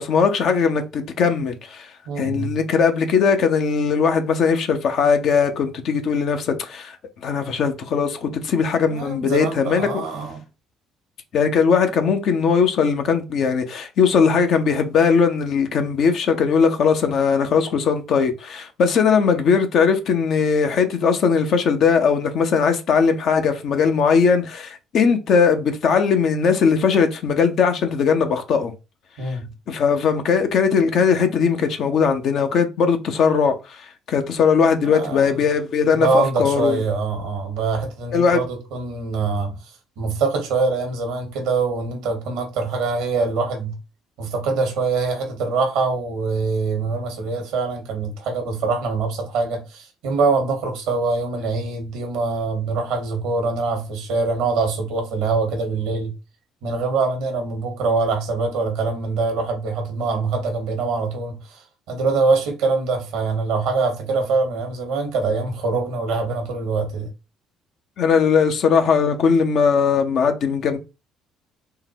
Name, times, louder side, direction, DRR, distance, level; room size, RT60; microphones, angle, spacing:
voice 1, 0.0-1.9 2.2-7.0 7.2-10.0 11.3-28.7 29.2-29.3 29.7-36.8 38.1-38.4 68.0-70.8, left 6 dB, 60° left, 0.7 m, -19 dB
voice 2, 2.1-2.6 8.9-10.4 29.2-29.5 34.8-35.4 35.9-39.6 40.0-43.8 44.2-56.1 56.6-61.6 61.9-67.1, right 4 dB, 70° right, 1.0 m, -24 dB
3.7 x 2.1 x 2.8 m
hypercardioid pair, 55°, 0 cm